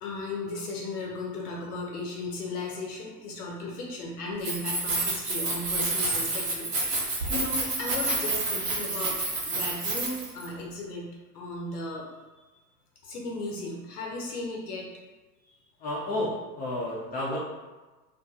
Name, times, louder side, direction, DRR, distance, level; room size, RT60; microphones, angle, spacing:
voice 1, 0.0-9.2 9.4-12.0 12.3-12.4 13.0-14.9 15.5-15.6, left 2 dB, 70° left, -1 dB, 0.7 m, -36 dB
Keys jangling, 4.3-10.5, right 2 dB, 80° right, 0.9 m, -29 dB
voice 2, 15.8-17.4, left 1 dB, 20° left, -7 dB, 0.5 m, -31 dB
2.5 x 2.3 x 2.6 m, 1.2 s
figure-of-eight pair, 85°, 47 cm